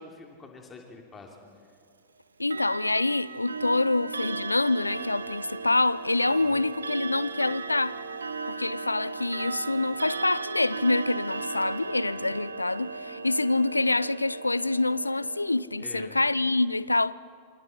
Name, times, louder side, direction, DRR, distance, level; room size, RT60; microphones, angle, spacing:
voice 1, 0.0-1.4 6.3-6.5 15.8-16.2, left 3 dB, 20° left, 3.2 m, -46 dB
voice 2, 2.4-8.0 8.5-17.1, left 2 dB, 85° left, 0.4 m, -26 dB
Clock, 2.4-15.5, right 4 dB, 75° right, 1.1 m, -36 dB
28.0 x 27.0 x 4.4 m
figure-of-eight pair, 90°, 0 cm